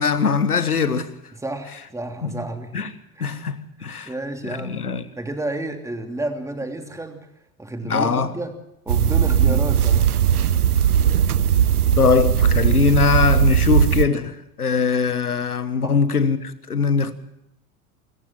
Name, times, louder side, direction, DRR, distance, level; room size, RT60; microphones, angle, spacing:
voice 1, 0.0-1.1 2.2-2.4 2.7-2.9 3.2-4.1 4.5-5.0 7.8-8.3 9.5-9.6 12.0-17.1, left 5 dB, 90° left, 1.4 m, -21 dB
voice 2, 1.3-2.7 3.2-3.3 3.8-4.8 5.2-7.3 7.6-8.5 8.8-10.1 15.8-16.0, right 2 dB, 5° right, 2.9 m, -31 dB
sound 1, 8.9-14.0, right 9 dB, 85° right, 0.7 m, -18 dB
24.5 x 14.5 x 7.5 m
figure-of-eight pair, 80°, 44 cm